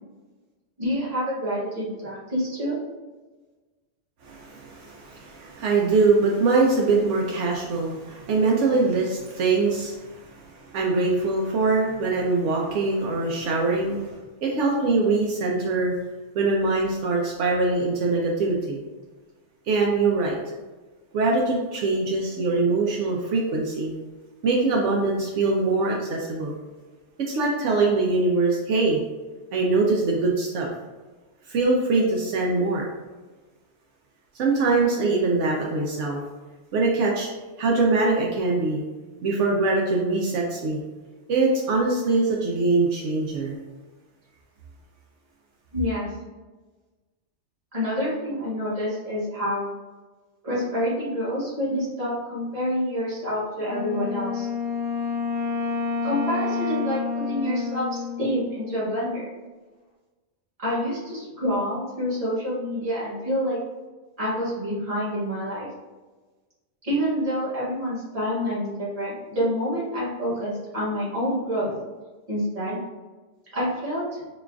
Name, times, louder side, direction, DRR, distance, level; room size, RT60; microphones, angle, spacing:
voice 1, 0.8-2.8 45.7-46.1 47.7-49.7 50.4-54.5 56.0-59.3 60.6-63.6 64.2-65.7 66.8-71.7 72.3-72.8 73.5-74.2, equal, 30° right, -7 dB, 1.4 m, -27 dB
voice 2, 4.2-15.9 16.3-18.8 19.7-20.5 21.1-23.9 24.4-26.5 27.3-29.0 29.5-30.7 31.5-32.8 34.3-36.2 36.7-37.3 37.6-38.8 39.2-40.8 41.3-43.5, right 3 dB, 80° right, -2 dB, 0.9 m, -23 dB
Wind instrument woodwind instrument, 53.6-59.1, left 5 dB, 55° left, 0.9 m, -29 dB
6.0 x 2.4 x 2.3 m, 1.3 s
omnidirectional pair, 1.3 m